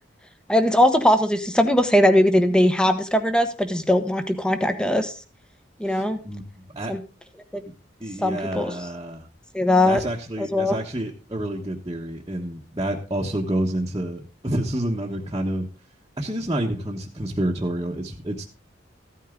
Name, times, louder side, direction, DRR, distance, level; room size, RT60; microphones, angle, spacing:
voice 1, 0.5-5.1 5.8-6.2 6.9-7.0 7.5-7.6 8.2-8.7 9.5-10.0 10.4-10.8, left 1 dB, 5° left, 8 dB, 1.1 m, -20 dB
voice 2, 5.9-6.4 6.7-7.0 8.0-9.3 9.8-15.7 16.2-18.4, right 1 dB, 20° right, -4 dB, 1.2 m, -28 dB
15.0 x 9.3 x 3.8 m, 0.34 s
head